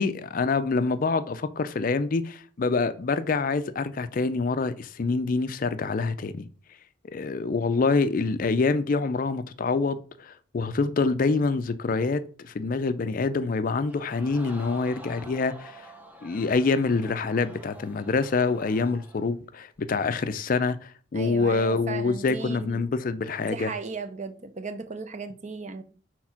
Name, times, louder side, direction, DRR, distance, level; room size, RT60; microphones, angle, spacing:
voice 1, 0.0-6.5 7.1-15.9 16.2-23.7, left 4 dB, 45° left, 0.4 m, -26 dB
Crowd, 13.9-19.3 19.8-19.9, right 1 dB, 10° right, 0.8 m, -48 dB
voice 2, 21.1-22.9 23.4-25.8, right 4 dB, 35° right, 0.6 m, -36 dB
4.6 x 4.2 x 5.7 m
head